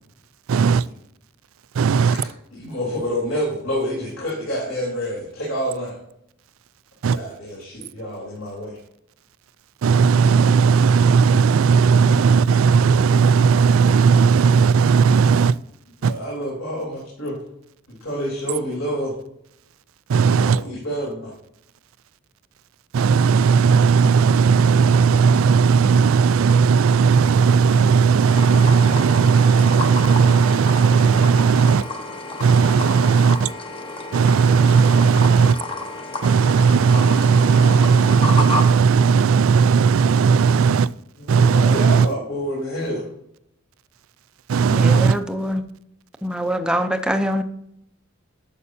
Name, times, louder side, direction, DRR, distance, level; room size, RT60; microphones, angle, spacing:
voice 1, 0.5-0.9 1.7-2.2 7.0-7.2 9.8-15.6 16.0-16.1 20.1-20.6 22.9-31.9 32.4-33.5 34.1-35.6 36.2-40.9 41.3-42.1 44.5-45.2, right 5 dB, 85° right, 19 dB, 0.4 m, -16 dB
voice 2, 2.5-5.9 7.1-8.8 16.0-17.3 18.0-19.1 20.4-21.3 41.2-43.0, equal, 75° left, -6 dB, 3.6 m, -28 dB
sound 1, 28.3-38.6, left 2 dB, 25° left, 1.0 m, -31 dB
voice 3, 44.7-45.6 46.2-47.4, equal, 5° right, 7 dB, 0.6 m, -24 dB
11.0 x 6.8 x 2.7 m, 0.75 s
head